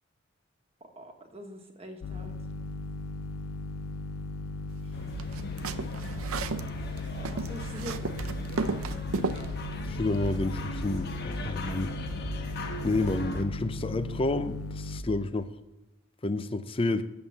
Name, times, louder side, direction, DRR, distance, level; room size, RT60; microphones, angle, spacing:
voice 1, 0.8-2.4 4.8-5.2 7.1-8.4, right 1 dB, 30° right, 3 dB, 1.3 m, -44 dB
sound 1, 2.0-15.0, left 2 dB, 90° left, 0.6 m, -37 dB
sound 2, 4.9-13.4, left 1 dB, 50° left, 1.1 m, -38 dB
sound 3, 5.2-6.7 7.0-9.5, right 4 dB, 85° right, 0.6 m, -33 dB
voice 2, 9.9-11.9 12.8-15.5 16.2-17.0, left 2 dB, 25° left, 11 dB, 0.5 m, -29 dB
8.6 x 7.3 x 5.7 m, 0.99 s
head